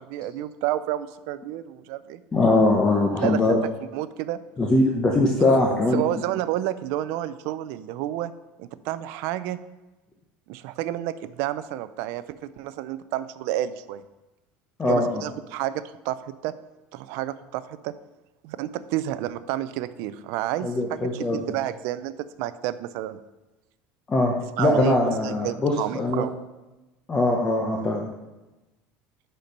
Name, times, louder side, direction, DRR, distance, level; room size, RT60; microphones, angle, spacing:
voice 1, 0.0-2.2 3.2-3.6 3.9-4.4 5.7-8.3 8.6-9.6 10.5-14.0 14.8-16.5 16.9-17.9 18.4-22.1 22.4-23.2 24.6-26.3, right 13 dB, 65° right, 14 dB, 0.4 m, -30 dB
voice 2, 2.3-3.6 4.6-6.0 14.8-15.2 20.6-21.4 24.1-26.2 27.1-28.0, left 2 dB, 15° left, 0 dB, 0.8 m, -21 dB
10.0 x 4.5 x 5.3 m, 1.1 s
cardioid pair, 150°, 5 cm